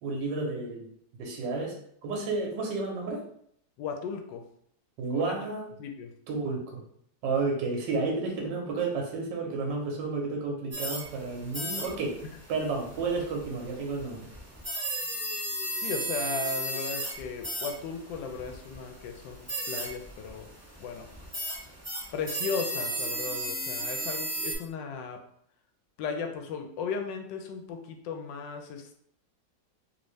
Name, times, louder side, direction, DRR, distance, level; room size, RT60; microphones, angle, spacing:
voice 1, 0.0-1.8 2.0-3.2 5.0-5.7 6.3-6.8 7.2-12.2 12.5-14.3, right 3 dB, 75° right, 0 dB, 1.5 m, -31 dB
voice 2, 3.8-4.4 5.1-5.4 5.8-6.1 15.8-20.5 20.8-21.1 22.1-25.2 26.0-28.9, left 5 dB, 80° left, 4 dB, 1.2 m, -36 dB
sound 1, 10.7-24.5, right 1 dB, 20° right, 0.4 m, -36 dB
3.3 x 2.6 x 3.2 m, 0.66 s
omnidirectional pair, 2.0 m